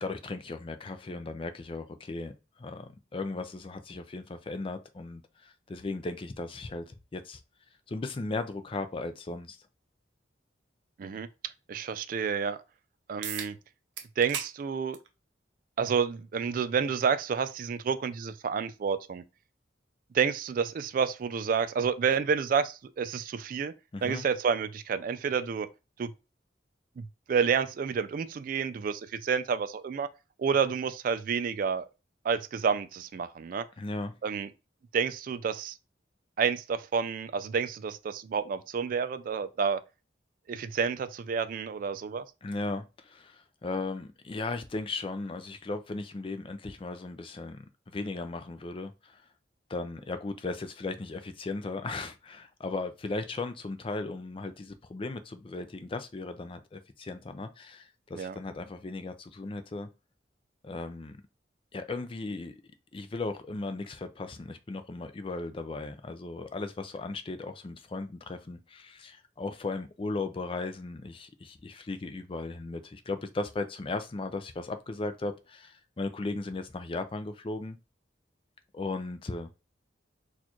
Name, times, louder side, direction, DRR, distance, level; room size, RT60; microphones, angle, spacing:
voice 1, 0.0-2.3 2.6-7.4 7.9-9.6 23.9-24.3 33.8-34.1 42.4-49.2 49.7-59.9 60.6-61.2 61.7-62.6 62.9-77.8 78.7-79.6, left 3 dB, 30° left, 0.4 m, -37 dB
voice 2, 11.7-12.6 13.1-13.6 14.2-15.0 15.8-19.2 20.1-23.7 24.0-25.7 26.0-26.1 27.0-30.1 30.4-31.8 32.2-33.7 34.2-34.5 34.9-35.8 36.4-39.8 40.5-42.2 58.1-58.4, right 6 dB, 50° right, 0.3 m, -29 dB
sound 1, 13.2-13.5 14.0-14.5 14.9-15.1 16.2-16.3 21.2-21.3, right 8 dB, 90° right, 0.6 m, -36 dB
4.2 x 2.4 x 2.9 m
head